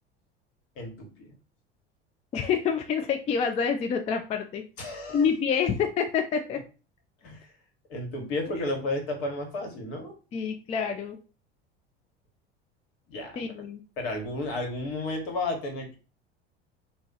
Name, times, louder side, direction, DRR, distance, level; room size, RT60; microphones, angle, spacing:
voice 1, 0.8-1.3 4.8-5.3 7.2-7.5 7.9-10.2 13.1-13.4 14.0-15.9, left 2 dB, 60° left, 3 dB, 1.2 m, -32 dB
voice 2, 2.3-4.6 5.1-6.6 10.3-11.2 13.4-13.8, left 6 dB, 20° left, 6 dB, 0.3 m, -27 dB
2.3 x 2.0 x 3.8 m, 0.34 s
figure-of-eight pair, 75°, 31 cm